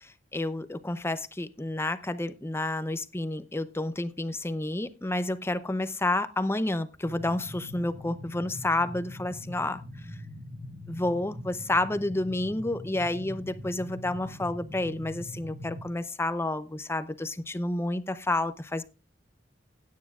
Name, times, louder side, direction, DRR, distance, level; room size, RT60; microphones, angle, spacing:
voice 1, 0.0-10.1 10.9-18.8, left 2 dB, 15° left, 0.6 m, -30 dB
sound 1, 7.0-15.8, left 1 dB, 60° right, 2.3 m, -42 dB
16.5 x 9.5 x 2.4 m
head